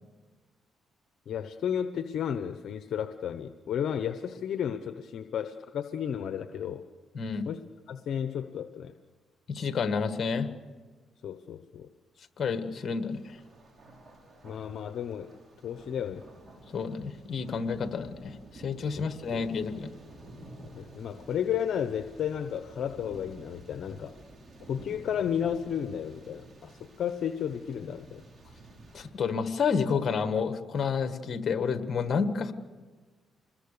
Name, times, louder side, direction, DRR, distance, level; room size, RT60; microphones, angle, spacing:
voice 1, 1.3-6.8 7.5-7.6 7.9-8.9 11.2-11.9 14.4-15.3 15.6-16.2 19.0-19.1 19.3-19.4 20.8-24.1 24.7-28.2, left 8 dB, 65° left, 9 dB, 0.9 m, -33 dB
voice 2, 7.1-7.5 9.5-10.5 12.4-13.4 16.7-19.9 28.9-32.5, left 5 dB, 50° left, 9 dB, 1.7 m, -30 dB
Thunder, 13.1-29.1, right 1 dB, 40° right, 6.0 m, -51 dB
26.5 x 21.0 x 6.8 m, 1.4 s
cardioid pair, 90°, 0 cm